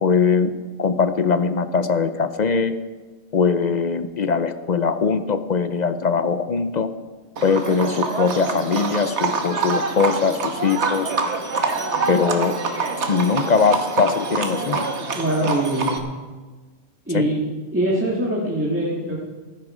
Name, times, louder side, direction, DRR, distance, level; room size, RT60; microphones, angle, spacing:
voice 1, 0.0-0.5 0.8-2.7 3.3-6.9 7.4-11.1 12.1-12.6 13.1-14.9 15.4-15.5 17.1-17.3, left 5 dB, 45° left, 11 dB, 0.7 m, -21 dB
Livestock farm animals working animals, 7.4-16.0, right 4 dB, 85° right, 1.5 m, -26 dB
voice 2, 15.1-16.0 17.1-17.4 17.7-19.2, right 1 dB, 10° right, -6 dB, 1.9 m, -23 dB
15.0 x 12.0 x 4.9 m, 1.3 s
omnidirectional pair, 1.1 m